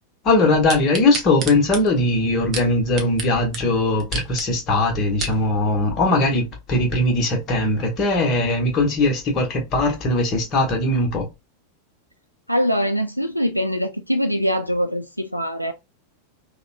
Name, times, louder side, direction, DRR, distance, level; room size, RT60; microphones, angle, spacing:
voice 1, 0.2-11.3, left 2 dB, 30° left, 1.2 m, -20 dB
sound 1, 0.7-3.3 3.5-3.6 4.0-4.4 4.9-5.4 6.0-6.1, right 4 dB, 30° right, 0.9 m, -30 dB
voice 2, 12.5-15.7, equal, 90° left, 0.3 m, -23 dB
3.5 x 2.2 x 2.6 m
figure-of-eight pair, 90°, 0 cm